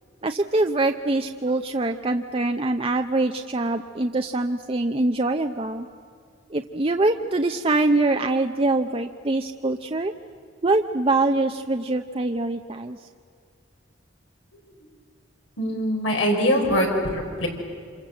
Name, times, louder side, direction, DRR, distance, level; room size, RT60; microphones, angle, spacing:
voice 1, 0.2-5.9 6.5-10.1 10.6-13.0, right 2 dB, 30° right, 5 dB, 0.7 m, -24 dB
voice 2, 15.6-17.5, equal, 90° left, 1 dB, 4.7 m, -23 dB
27.0 x 27.0 x 7.7 m, 2.2 s
head